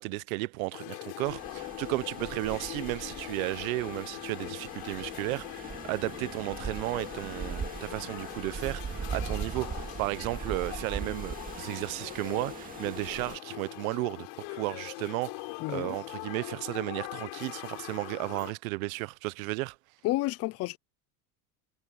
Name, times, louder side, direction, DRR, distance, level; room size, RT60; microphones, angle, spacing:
voice 1, 0.0-19.8, right 22 dB, 80° right, 0.8 m, -34 dB
sound 1, 0.7-18.5, left 31 dB, 65° left, 6.2 m, -42 dB
sound 2, 1.2-13.4, right 6 dB, 20° right, 2.4 m, -40 dB
voice 2, 15.6-16.0 20.0-20.8, left 18 dB, 35° left, 0.6 m, -30 dB
supercardioid pair, 145°, 41 cm